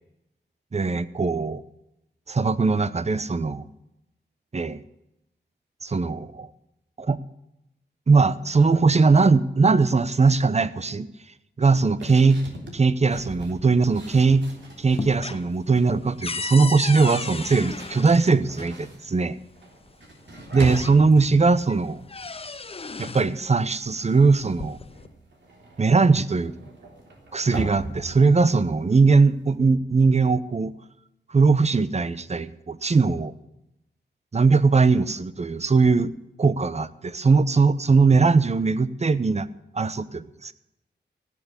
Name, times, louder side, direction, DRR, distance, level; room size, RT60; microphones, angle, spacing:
voice 1, 0.7-1.6 2.3-3.6 4.5-4.8 5.8-6.5 7.0-7.2 8.1-11.1 11.6-12.4 12.7-14.5 14.8-19.4 20.5-22.1 23.0-24.8 25.8-26.5 27.3-30.7 31.3-33.3 34.3-36.1 36.4-39.5 39.7-40.5, right 4 dB, 35° right, 15 dB, 0.8 m, -20 dB
sound 1, 12.0-15.2 15.5-16.0 16.9-23.1 23.4-23.8 24.1-29.6, right 2 dB, 75° right, 3.5 m, -40 dB
sound 2, 13.8-14.5 14.8-18.8 19.9-20.0 20.4-21.3 21.7-23.4 24.3-25.1, left 4 dB, 30° left, 0.7 m, -35 dB
16.0 x 7.4 x 8.3 m, 0.86 s
cardioid pair, 70°, 19 cm